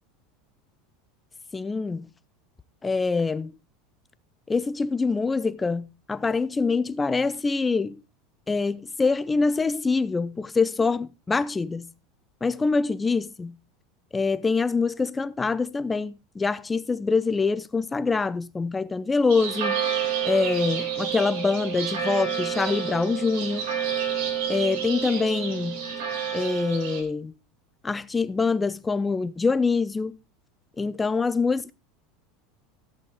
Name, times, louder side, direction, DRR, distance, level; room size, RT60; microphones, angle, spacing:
voice 1, 1.5-2.1 2.8-3.6 4.5-8.0 8.5-11.9 12.4-13.5 14.1-19.8 20.2-23.7 24.5-25.8 26.3-27.3 27.8-30.2 30.8-31.7, left 4 dB, 15° left, 0.5 m, -25 dB
sound 1, 19.3-27.0, right 8 dB, 75° right, 3.7 m, -29 dB
14.5 x 7.9 x 3.5 m
supercardioid pair, 145°, 0 cm